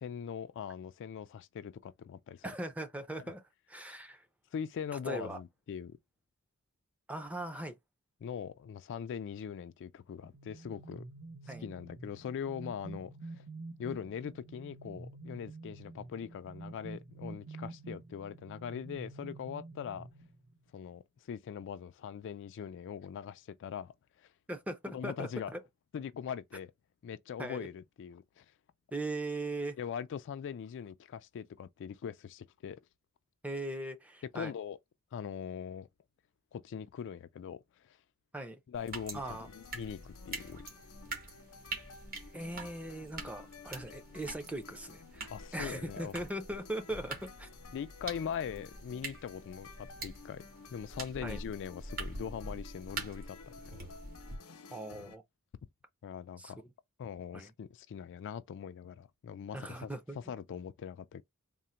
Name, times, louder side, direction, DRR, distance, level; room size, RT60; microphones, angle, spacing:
voice 1, 0.0-2.4 3.2-3.3 4.5-6.0 8.2-11.0 11.4-13.4 13.8-20.1 20.7-24.3 24.9-25.5 25.9-26.7 27.0-28.5 29.8-32.8 34.3-34.8 35.1-35.9 36.5-38.0 38.7-40.6 45.3-46.2 47.7-50.4 50.7-54.0 56.0-56.6 57.0-59.9 60.2-61.2, left 7 dB, 55° left, 0.3 m, -41 dB
voice 2, 2.4-3.4 3.7-4.3 5.1-5.4 7.1-7.8 11.5-11.6 24.5-25.6 27.4-27.7 28.9-29.8 33.4-34.5 38.3-38.6 39.1-39.5 42.3-47.5 51.2-51.4 54.7-55.2 56.4-56.5 57.3-57.5 59.5-60.2, right 1 dB, 5° right, 0.5 m, -39 dB
sound 1, 10.2-20.7, right 2 dB, 70° right, 0.9 m, -48 dB
sound 2, 38.7-54.4, right 3 dB, 40° right, 1.2 m, -45 dB
sound 3, 39.1-55.2, left 4 dB, 80° left, 0.7 m, -54 dB
3.8 x 2.1 x 4.3 m
head